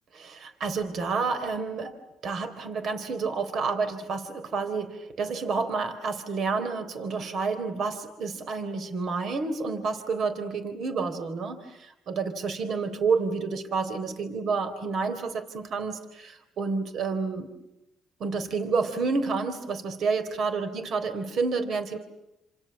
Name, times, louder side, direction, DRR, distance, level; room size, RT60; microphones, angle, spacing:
voice 1, 0.1-2.0 2.2-17.5 18.2-22.0, right 4 dB, 65° right, 9 dB, 3.7 m, -29 dB
29.5 x 27.5 x 7.2 m, 0.91 s
cardioid pair, 90°, 0 cm